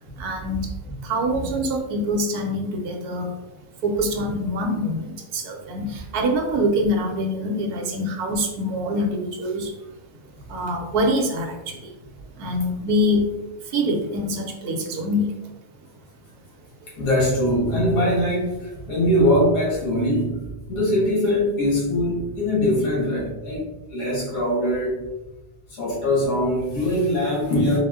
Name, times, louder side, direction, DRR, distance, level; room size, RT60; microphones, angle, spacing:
voice 1, 0.2-0.7 1.0-3.4 3.8-9.8 10.5-11.9 12.4-13.3 13.6-15.5, equal, 70° right, 2 dB, 1.1 m, -25 dB
voice 2, 16.8-25.1 25.7-27.8, left 1 dB, 70° left, -4 dB, 2.0 m, -22 dB
4.1 x 2.1 x 3.4 m, 0.97 s
omnidirectional pair, 1.7 m